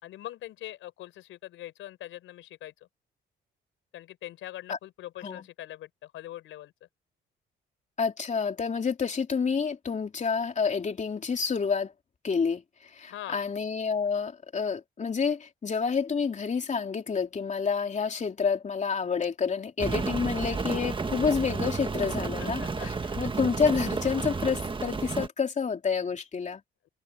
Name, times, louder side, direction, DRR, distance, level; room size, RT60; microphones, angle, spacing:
voice 1, 0.0-2.7 3.9-6.7 13.1-13.5 22.2-23.2, left 14 dB, 85° left, 5.5 m, -43 dB
voice 2, 8.0-11.9 12.2-22.9 23.2-26.6, left 5 dB, 35° left, 3.2 m, -29 dB
Rain, 19.8-25.3, right 4 dB, 25° right, 1.6 m, -31 dB
cardioid pair, 90°, 20 cm